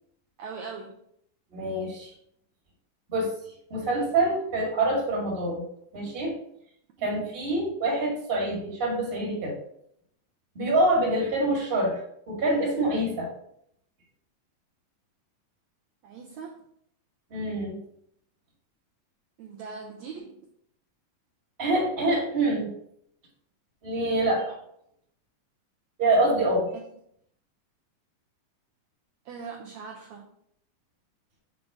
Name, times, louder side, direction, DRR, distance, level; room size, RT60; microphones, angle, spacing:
voice 1, 0.4-1.0 7.0-7.1 16.0-16.7 19.4-20.5 26.7-26.8 29.3-30.3, right 5 dB, 75° right, 0 dB, 1.7 m, -40 dB
voice 2, 1.5-2.1 3.1-3.3 3.7-5.6 5.9-6.3 7.0-9.5 10.5-12.0 12.3-13.3 17.3-17.8 21.6-22.7 23.8-24.6 26.0-26.7, right 2 dB, 25° right, -3 dB, 1.6 m, -25 dB
7.2 x 3.7 x 4.9 m, 0.71 s
omnidirectional pair, 3.9 m